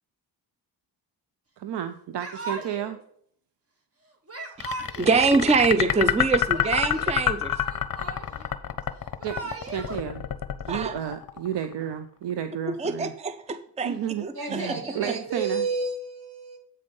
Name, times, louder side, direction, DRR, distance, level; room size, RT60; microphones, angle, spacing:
voice 1, 1.6-3.0 9.2-10.2 10.7-13.1 13.8-15.7, right 9 dB, 80° right, 0.6 m, -32 dB
Yell / Crying sobbing, 2.1-2.9 4.3-5.3 6.3-7.2 7.5-8.5 9.0-10.0, right 2 dB, 35° right, 1.6 m, -37 dB
sound 1, 4.6-11.7, left 11 dB, 55° left, 0.6 m, -27 dB
voice 2, 5.0-7.5 10.7-10.9 12.8-14.8, right 4 dB, 15° right, 0.5 m, -24 dB
voice 3, 14.3-16.6, right 3 dB, 65° right, 3.0 m, -31 dB
7.9 x 5.3 x 5.3 m
wide cardioid pair, 95°, 40 cm